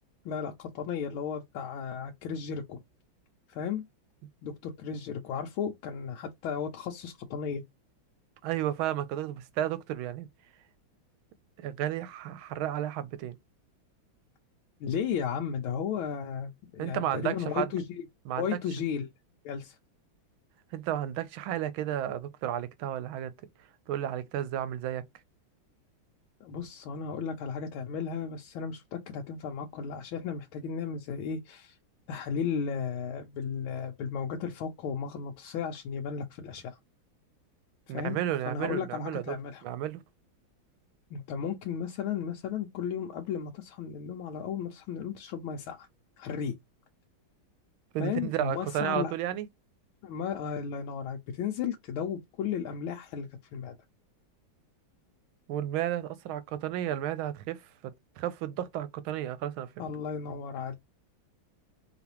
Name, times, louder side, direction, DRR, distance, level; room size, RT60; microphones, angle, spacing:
voice 1, 0.2-2.8 3.5-3.8 4.4-7.6 14.8-18.1 18.4-19.1 19.4-19.8 26.4-31.8 32.1-36.8 37.9-39.6 41.1-45.9 46.2-46.5 48.0-49.1 50.0-53.8 59.8-60.7, left 7 dB, 90° left, 1.5 m, -34 dB
voice 2, 8.4-10.3 11.6-13.3 16.8-17.7 18.3-18.5 20.7-23.3 23.9-25.0 37.9-39.4 39.6-40.0 47.9-49.5 55.5-59.8, right 11 dB, 85° right, 1.5 m, -32 dB
4.0 x 3.5 x 2.9 m
omnidirectional pair, 2.2 m